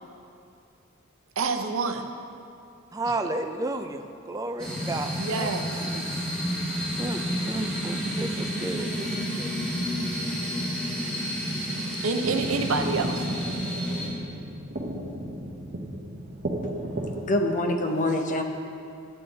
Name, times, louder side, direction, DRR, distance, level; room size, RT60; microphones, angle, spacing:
voice 1, 1.4-2.1 5.2-5.6 5.9-6.1 11.7-13.3, right 4 dB, 80° right, 6 dB, 0.7 m, -28 dB
voice 2, 2.9-5.9 7.0-9.6, right 2 dB, 15° right, 6 dB, 0.4 m, -33 dB
sound 1, 4.6-14.1, equal, 5° left, 1.9 m, -30 dB
sound 2, 12.2-17.2, right 1 dB, 40° right, 0.9 m, -34 dB
voice 3, 17.2-18.4, left 1 dB, 40° left, 4 dB, 0.7 m, -25 dB
9.3 x 8.7 x 3.9 m, 2.6 s
head